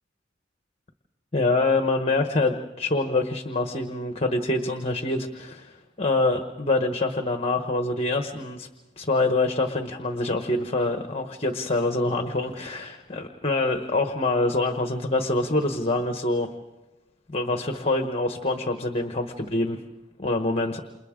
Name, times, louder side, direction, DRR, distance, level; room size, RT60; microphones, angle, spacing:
voice 1, 1.3-8.7 9.0-16.5 17.3-19.8 20.2-20.8, left 2 dB, 30° left, 5 dB, 1.2 m, -25 dB
29.0 x 28.5 x 3.8 m, 1.0 s
head